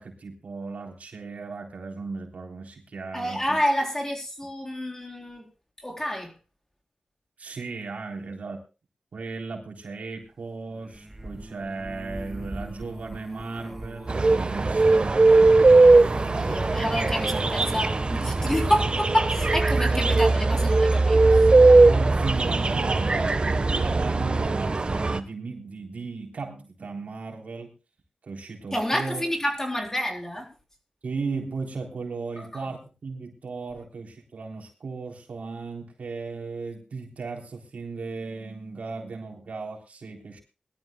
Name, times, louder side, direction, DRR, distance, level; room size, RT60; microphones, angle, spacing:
voice 1, 0.0-3.6 7.4-8.6 9.1-15.7 19.7-20.0 20.4-20.5 21.8-27.7 28.2-29.2 31.0-40.4, right 4 dB, 80° right, 2 dB, 3.6 m, -36 dB
voice 2, 3.1-5.5 5.8-6.3 16.1-21.5 28.7-30.5 32.4-32.5, equal, 20° left, 2 dB, 4.1 m, -28 dB
sound 1, 10.7-24.1 24.6-24.9 25.2-25.3, right 1 dB, 15° right, 2.2 m, -40 dB
sound 2, 14.1-25.2, right 3 dB, 45° right, 1.2 m, -19 dB
21.5 x 12.5 x 2.3 m, 0.30 s
wide cardioid pair, 65°, 2 cm